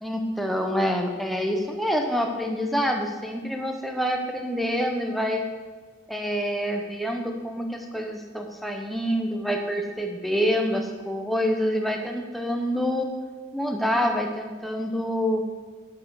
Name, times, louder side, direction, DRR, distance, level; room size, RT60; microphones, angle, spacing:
voice 1, 0.0-5.5 6.1-13.1 13.5-15.4, equal, ahead, 2 dB, 0.7 m, -27 dB
8.7 x 7.4 x 4.7 m, 1.4 s
head